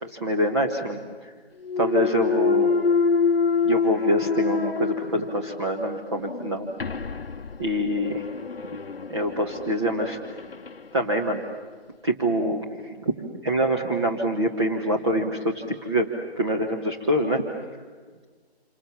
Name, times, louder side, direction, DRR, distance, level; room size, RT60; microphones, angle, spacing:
voice 1, 0.0-1.3 1.8-2.7 3.6-6.7 7.6-8.3 9.1-10.2 10.9-11.4 12.0-17.4, equal, 25° right, 0 dB, 1.6 m, -25 dB
Thump thud, 1.6-5.7 6.1-10.8, left 5 dB, 60° left, 0.9 m, -26 dB
28.0 x 26.5 x 7.3 m, 1.5 s
figure-of-eight pair, 165°, 33 cm